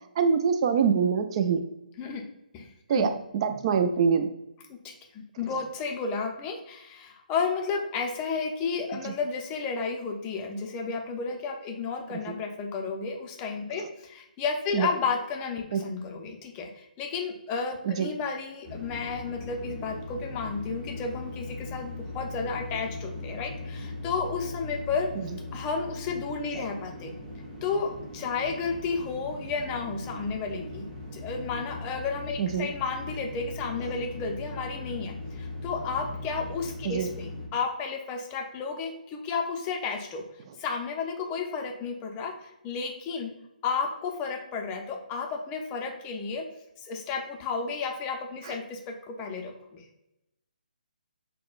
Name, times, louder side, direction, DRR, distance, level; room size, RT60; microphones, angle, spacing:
voice 1, 0.2-1.6 2.9-4.3 9.0-9.1 14.7-14.9 15.7-15.8 17.9-18.1 26.5-26.6 32.4-32.7 36.8-37.1 48.4-48.5, right 6 dB, 35° right, 8 dB, 0.4 m, -24 dB
voice 2, 2.5-3.1 4.8-4.9 5.4-25.1 25.5-27.1 27.6-40.2 40.6-43.3 43.6-46.5 46.8-49.8, left 5 dB, 20° left, 2 dB, 0.5 m, -32 dB
sound 1, 18.6-37.5, left 2 dB, 15° right, 0.8 m, -39 dB
6.0 x 2.1 x 2.4 m, 0.87 s
figure-of-eight pair, 145°, 5 cm